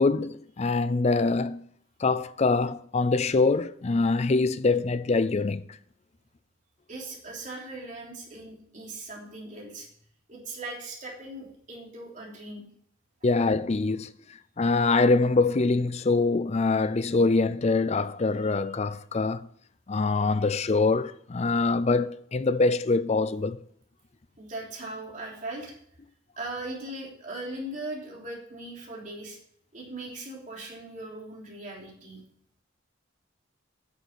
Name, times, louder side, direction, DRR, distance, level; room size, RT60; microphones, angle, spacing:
voice 1, 0.0-1.7 2.0-5.6 13.2-14.1 14.6-19.5 19.9-23.6, left 3 dB, 35° left, 0.5 m, -24 dB
voice 2, 6.9-9.9 10.3-12.6 18.4-18.5 24.4-25.7 26.4-29.4 29.7-32.2, right 2 dB, 40° right, 3.3 m, -39 dB
9.2 x 6.5 x 6.8 m
head